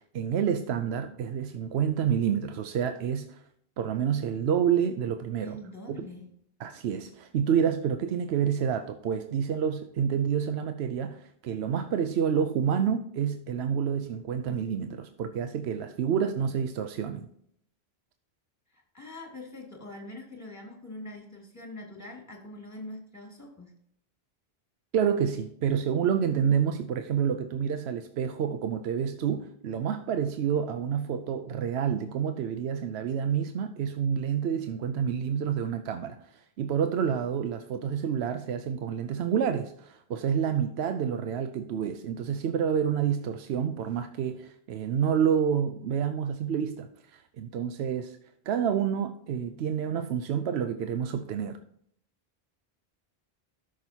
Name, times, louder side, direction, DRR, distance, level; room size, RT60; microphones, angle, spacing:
voice 1, 0.0-3.4 3.8-5.6 5.9-6.0 6.6-17.3 24.9-48.2 48.5-51.6, right 8 dB, 90° right, 8 dB, 0.9 m, -28 dB
voice 2, 5.4-6.3 18.7-23.7, left 1 dB, 15° left, 0 dB, 2.4 m, -43 dB
13.0 x 6.4 x 2.8 m, 0.68 s
omnidirectional pair, 1.0 m